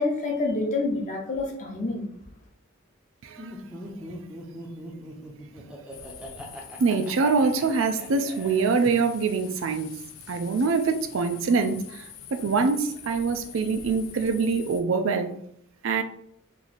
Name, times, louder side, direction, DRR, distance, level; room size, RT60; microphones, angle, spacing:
voice 1, 0.0-2.1, left 3 dB, 35° left, 1 dB, 0.7 m, -27 dB
voice 2, 3.2-3.5 4.1-4.2 5.6-5.7 6.8-9.9 10.3-15.3 15.8-16.0, right 4 dB, 65° right, 7 dB, 0.4 m, -24 dB
Laughter, 3.4-9.3, equal, 5° right, 0.6 m, -42 dB
sound 1, 5.9-14.8, left 8 dB, 80° left, 0.4 m, -45 dB
3.0 x 2.6 x 4.0 m, 0.69 s
head